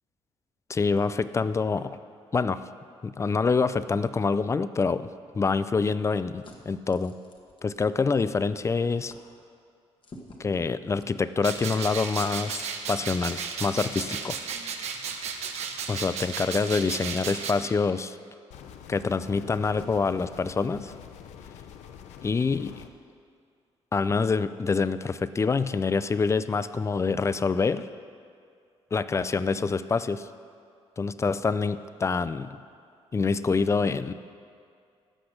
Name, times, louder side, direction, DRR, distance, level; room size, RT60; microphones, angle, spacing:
voice 1, 0.7-2.0 2.3-2.6 3.0-5.1 5.3-7.1 7.6-9.1 10.4-14.3 15.9-18.2 18.9-20.9 22.2-22.8 23.9-27.9 28.9-30.3 31.0-32.5 33.1-34.1, left 4 dB, 25° left, 14 dB, 0.4 m, -26 dB
sound 1, 5.0-8.4 8.6-8.8 9.0-9.3 10.0-11.9 12.3-12.4 13.9-14.5 15.2-15.3 16.2-16.4 17.5-18.0 18.9-19.0 19.3-20.0, left 1 dB, 45° left, 1.6 m, -50 dB
sound 2, 11.4-17.5, right 6 dB, 75° right, 1.0 m, -34 dB
sound 3, 18.5-22.9, left 8 dB, 85° left, 0.7 m, -46 dB
16.0 x 6.0 x 6.5 m, 2.3 s
cardioid pair, 90°, 12 cm